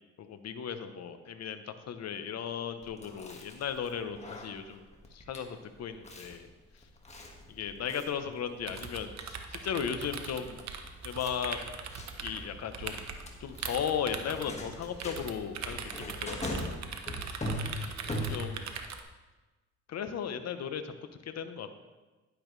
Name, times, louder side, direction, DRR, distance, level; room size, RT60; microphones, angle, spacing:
voice 1, 0.2-4.8 5.1-6.5 7.5-10.6 11.0-11.6 12.2-13.0 13.4-16.8 18.3-18.7 19.9-20.9 21.2-21.7, left 7 dB, 60° left, 9 dB, 0.9 m, -36 dB
Chewing mastication, 2.8-18.8, left 1 dB, 20° left, 1.7 m, -42 dB
sound 1, 8.6-19.0, right 6 dB, 65° right, 1.0 m, -41 dB
11.0 x 9.8 x 3.2 m, 1.2 s
cardioid pair, 90°, 30 cm